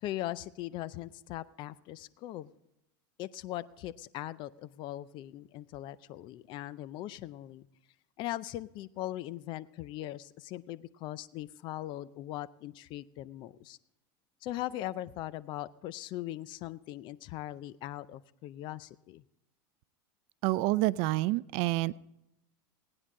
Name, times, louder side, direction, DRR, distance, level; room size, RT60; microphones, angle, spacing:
voice 1, 0.0-2.5 3.2-7.7 8.2-13.8 14.4-19.2, left 14 dB, 45° left, 17 dB, 0.5 m, -40 dB
voice 2, 20.4-22.0, right 18 dB, 55° right, 19 dB, 0.4 m, -28 dB
18.5 x 9.8 x 3.7 m, 0.85 s
supercardioid pair, 135°, 11 cm